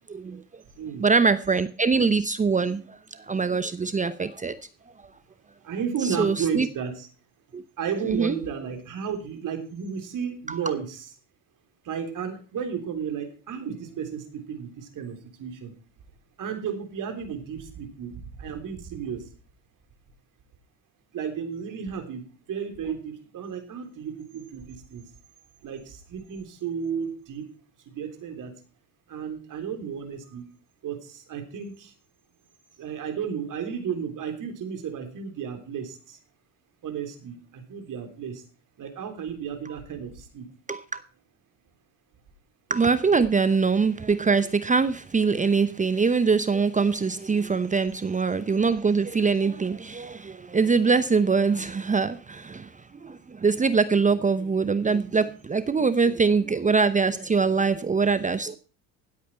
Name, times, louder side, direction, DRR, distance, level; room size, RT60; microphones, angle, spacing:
voice 1, 0.1-0.6 1.0-4.5 6.0-6.7 7.5-7.6 8.1-8.4 10.5-10.6 40.7-41.0 42.7-58.6, right 4 dB, 20° right, 0.8 m, -23 dB
voice 2, 0.7-1.1 5.6-7.1 7.8-11.1 11.8-15.7 16.4-19.3 21.1-25.0 25.6-27.5 27.8-28.5 29.1-30.5 30.8-31.9 32.8-36.2 36.8-38.4 38.8-40.4, right 7 dB, 50° right, 3.5 m, -33 dB
16.0 x 8.5 x 4.5 m
hypercardioid pair, 70°, 39 cm